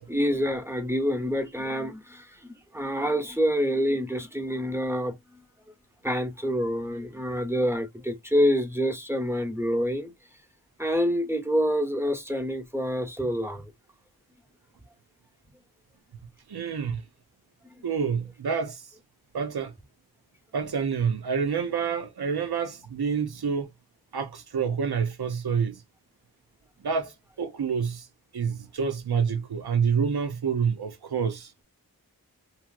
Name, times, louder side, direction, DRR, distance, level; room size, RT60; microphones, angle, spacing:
voice 1, 0.1-2.4 2.7-5.1 6.0-10.1 10.8-13.7, equal, 5° right, 0.9 m, -27 dB
voice 2, 16.5-17.0 17.8-18.8 19.3-19.7 20.5-23.7 24.1-25.8 26.8-27.1 27.4-28.1 28.3-31.5, right 6 dB, 80° right, 0.8 m, -27 dB
3.1 x 2.8 x 2.4 m
wide cardioid pair, 50°, 38 cm